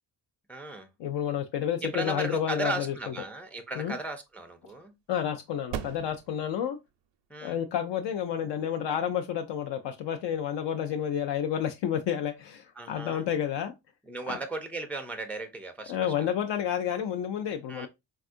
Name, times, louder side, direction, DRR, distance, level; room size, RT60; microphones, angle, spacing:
voice 1, 0.5-0.9 1.8-4.9 7.3-7.6 12.8-13.2 14.1-16.3 17.7-17.9, right 2 dB, 5° left, 0.3 m, -36 dB
voice 2, 1.0-3.1 3.8-4.0 5.1-6.8 7.4-13.7 14.3-14.4 15.9-17.9, left 9 dB, 70° left, 0.5 m, -30 dB
sound 1, 3.4-10.4, right 8 dB, 75° right, 0.5 m, -45 dB
3.5 x 2.3 x 2.4 m
cardioid pair, 95°, 44 cm